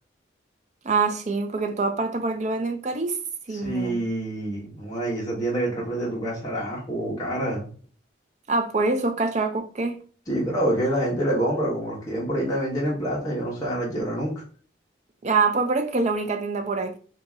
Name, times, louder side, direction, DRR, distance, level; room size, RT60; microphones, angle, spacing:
voice 1, 0.8-3.2 3.5-4.0 8.5-10.0 15.2-17.0, right 3 dB, 40° right, 0.5 m, -25 dB
voice 2, 3.5-7.7 10.3-14.4, right 1 dB, 20° left, 1.2 m, -27 dB
2.9 x 2.7 x 3.6 m
head